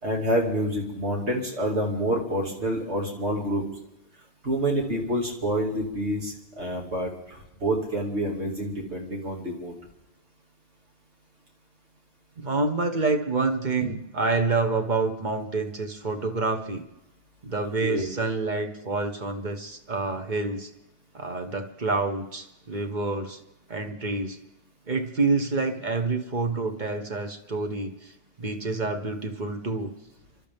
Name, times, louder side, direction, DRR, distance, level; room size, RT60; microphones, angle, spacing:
voice 1, 0.0-3.6 4.4-9.7 17.8-18.1, right 1 dB, 85° right, 0 dB, 2.8 m, -27 dB
voice 2, 12.4-16.8 17.4-20.7 21.1-23.4 23.7-24.4 24.9-28.1 28.4-29.9, right 3 dB, 45° right, 5 dB, 1.3 m, -27 dB
28.0 x 12.5 x 3.6 m, 0.91 s
omnidirectional pair, 1.1 m